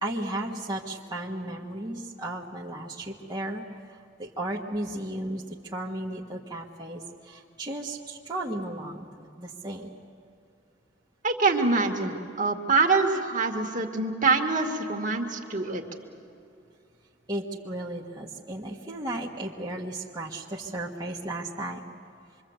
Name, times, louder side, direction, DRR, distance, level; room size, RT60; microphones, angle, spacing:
voice 1, 0.0-10.0 17.3-21.9, right 1 dB, 20° right, -4 dB, 1.5 m, -35 dB
voice 2, 11.2-15.8, right 3 dB, 45° right, 3 dB, 2.1 m, -25 dB
26.0 x 23.5 x 8.1 m, 2.6 s
head